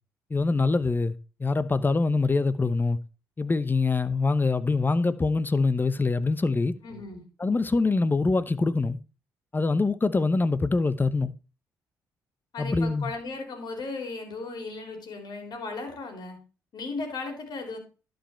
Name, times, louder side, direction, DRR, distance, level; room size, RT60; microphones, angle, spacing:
voice 1, 0.3-3.0 3.4-6.8 7.4-9.0 9.5-11.3 12.6-13.1, left 3 dB, 25° left, 0.9 m, -24 dB
voice 2, 6.8-7.2 12.5-16.4 16.7-17.8, left 3 dB, 55° left, 3.6 m, -36 dB
11.5 x 5.3 x 4.4 m
hypercardioid pair, 50°, 8 cm